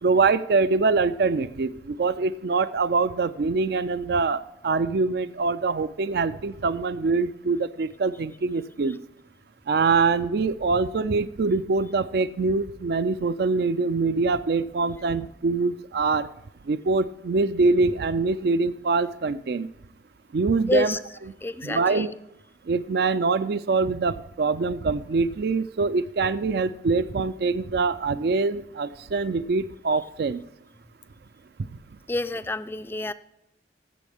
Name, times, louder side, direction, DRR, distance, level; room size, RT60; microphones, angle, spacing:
voice 1, 0.0-9.0 9.7-16.3 16.7-19.7 20.3-20.9 21.6-22.1 22.7-30.4, right 4 dB, 60° right, 14 dB, 0.4 m, -24 dB
voice 2, 20.7-21.0 21.4-22.1 32.1-33.1, left 2 dB, 10° left, 12 dB, 0.4 m, -28 dB
14.5 x 7.0 x 3.5 m, 0.83 s
head